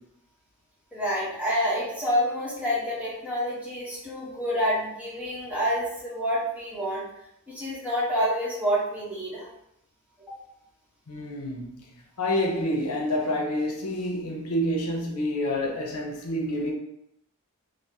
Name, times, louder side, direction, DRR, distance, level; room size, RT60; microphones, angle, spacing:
voice 1, 0.9-7.0 7.5-9.5 10.3-10.4, equal, 5° right, -7 dB, 0.9 m, -28 dB
voice 2, 11.1-11.8 12.2-16.7, left 1 dB, 90° left, 0 dB, 0.6 m, -28 dB
3.3 x 2.0 x 2.7 m, 0.79 s
head